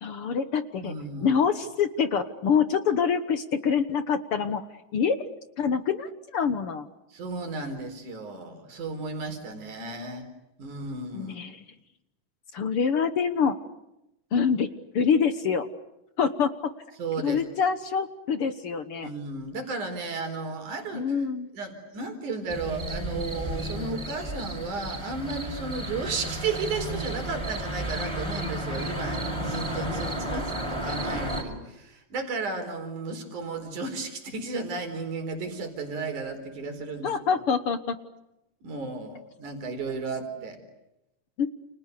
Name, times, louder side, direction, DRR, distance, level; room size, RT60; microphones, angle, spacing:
voice 1, 0.0-0.9 1.2-4.6 4.9-5.3 5.6-6.9 11.1-11.6 12.5-13.6 14.3-14.7 14.9-15.7 16.2-16.7 17.2-19.1 20.9-21.5 30.3-30.5 37.0-38.0 41.4-41.5, left 6 dB, 55° left, 10 dB, 1.8 m, -25 dB
voice 2, 0.8-1.4 7.1-10.3 10.6-11.4 17.0-17.4 19.0-21.3 21.5-37.2 38.6-40.6, right 3 dB, 75° right, 6 dB, 5.6 m, -34 dB
sound 1, 22.5-31.4, right 1 dB, 10° right, 5.3 m, -32 dB
30.0 x 29.5 x 6.8 m, 0.90 s
omnidirectional pair, 3.6 m